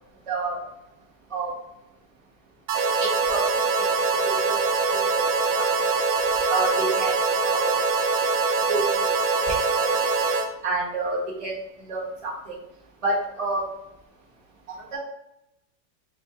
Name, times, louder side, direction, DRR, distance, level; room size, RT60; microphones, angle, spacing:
voice 1, 0.3-0.6 1.3-1.5 3.0-3.4 3.8-5.3 5.6-5.7 6.5-7.2 7.4-7.7 8.7-9.1 9.5-9.9 10.6-11.5 11.9-12.5 13.0-13.6 14.9-15.0, right 3 dB, 20° right, -5 dB, 1.0 m, -29 dB
sound 1, 2.7-10.5, right 4 dB, 75° right, 1.3 m, -23 dB
5.2 x 3.5 x 2.8 m, 0.86 s
omnidirectional pair, 2.1 m